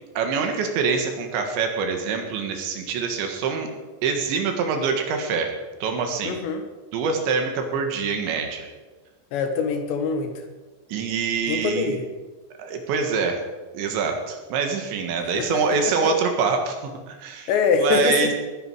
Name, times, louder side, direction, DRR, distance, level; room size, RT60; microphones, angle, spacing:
voice 1, 0.2-3.7 4.0-5.5 5.8-6.4 6.9-8.7 10.9-12.0 12.6-13.4 13.7-17.5 17.8-18.3, right 5 dB, 75° right, 4 dB, 3.9 m, -25 dB
voice 2, 6.2-6.6 9.3-10.3 11.5-12.0 15.3-16.1 17.5-18.3, left 5 dB, 75° left, 6 dB, 3.4 m, -24 dB
19.5 x 10.0 x 4.8 m, 1.3 s
omnidirectional pair, 5.3 m